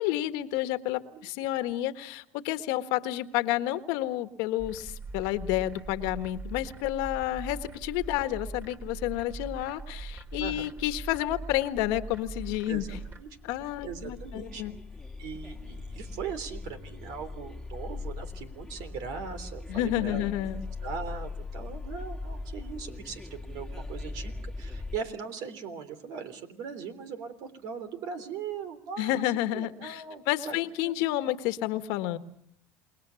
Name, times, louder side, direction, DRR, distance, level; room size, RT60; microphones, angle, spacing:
voice 1, 0.0-13.0 13.4-14.8 19.7-20.6 29.0-32.2, left 14 dB, 75° left, 10 dB, 1.5 m, -30 dB
sound 1, 4.6-13.2, right 3 dB, 30° right, 4.0 m, -41 dB
voice 2, 10.4-10.7 12.7-13.3 13.8-14.6 15.2-20.2 20.8-24.3 24.6-29.2 29.5-31.0, right 6 dB, 65° right, 10 dB, 3.4 m, -39 dB
sound 2, 12.7-25.0, left 3 dB, 5° left, 1.9 m, -40 dB
28.5 x 20.5 x 7.1 m, 0.68 s
supercardioid pair, 100°, 7 cm